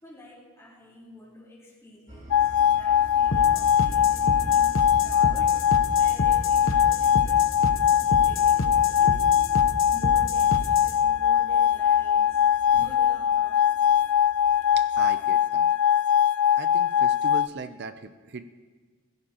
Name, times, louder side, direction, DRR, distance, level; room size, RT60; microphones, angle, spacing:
voice 1, 0.0-7.5 7.8-9.2 9.9-12.4 12.7-13.6, left 1 dB, 15° left, -6 dB, 4.0 m, -48 dB
sound 1, 2.1-15.1, right 1 dB, 35° right, 2.0 m, -48 dB
sound 2, 2.3-17.5, left 9 dB, 90° left, 0.4 m, -21 dB
sound 3, 3.3-11.0, left 2 dB, 65° left, 0.9 m, -30 dB
voice 2, 14.7-15.7 16.0-16.3 16.6-18.6, right 4 dB, 50° right, 9 dB, 0.6 m, -39 dB
22.0 x 16.0 x 3.0 m, 1.5 s
head